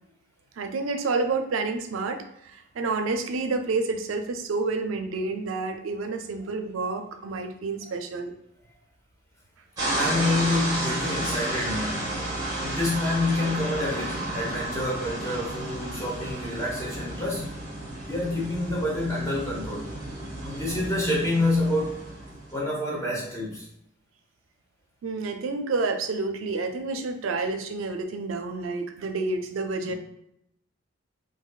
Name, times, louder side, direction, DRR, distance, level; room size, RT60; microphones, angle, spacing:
voice 1, 0.6-2.2 2.5-8.3 20.5-20.8 25.0-29.9, right 3 dB, 85° right, 6 dB, 0.4 m, -29 dB
sound 1, 9.8-22.6, right 1 dB, 20° right, 0.9 m, -32 dB
voice 2, 9.9-12.2 12.6-17.5 18.0-19.9 20.4-22.0 22.5-23.7 29.8-29.9, left 2 dB, 15° left, -5 dB, 1.0 m, -28 dB
3.9 x 2.6 x 2.3 m, 0.80 s
head